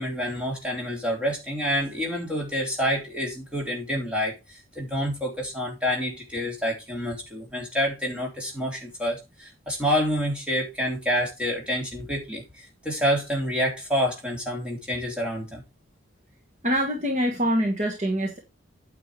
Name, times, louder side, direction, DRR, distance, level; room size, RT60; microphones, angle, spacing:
voice 1, 0.0-15.6, equal, 5° right, 3.7 m, -28 dB
voice 2, 16.6-18.4, equal, 35° right, 1.7 m, -24 dB
9.1 x 6.0 x 4.9 m
head